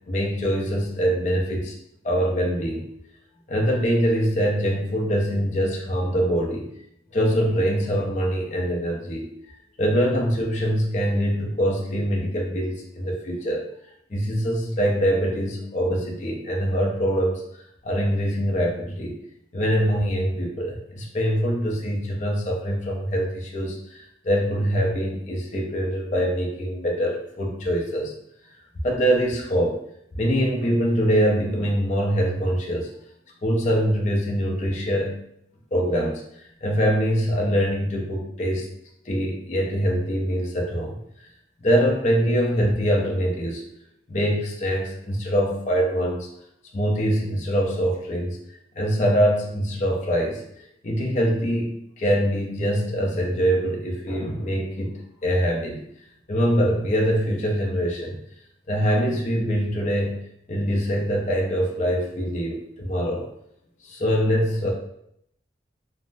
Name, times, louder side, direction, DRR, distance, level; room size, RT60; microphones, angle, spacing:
voice 1, 0.1-1.7 2.0-2.9 3.5-6.7 7.1-9.3 9.8-13.6 14.1-17.4 17.8-19.2 19.5-28.1 28.8-29.8 30.1-32.9 33.4-35.1 35.7-38.7 39.1-41.0 41.6-43.6 44.1-46.3 46.7-48.4 48.8-55.8 56.3-58.2 58.7-60.2 60.5-63.3 63.8-64.7, equal, 40° left, -1 dB, 0.5 m, -24 dB
3.4 x 2.0 x 2.5 m, 0.73 s
head